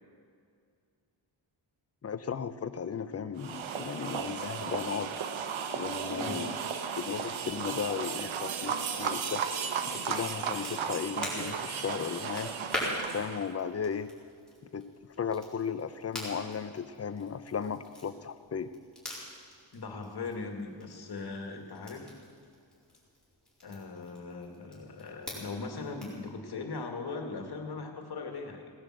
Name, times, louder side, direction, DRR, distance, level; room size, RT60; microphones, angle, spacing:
voice 1, 2.0-5.1 5.7-6.6 7.0-9.4 9.9-12.5 13.1-14.1 14.7-14.9 15.2-18.7, left 6 dB, 35° left, 12 dB, 0.6 m, -35 dB
sound 1, 3.4-13.5, right 7 dB, 85° right, 1.1 m, -35 dB
Crackle, 9.6-26.2, left 1 dB, ahead, 4.5 m, -44 dB
voice 2, 19.7-22.1 23.6-28.7, left 4 dB, 55° left, 4 dB, 2.0 m, -39 dB
17.5 x 10.0 x 7.7 m, 2.3 s
wide cardioid pair, 145°, 46 cm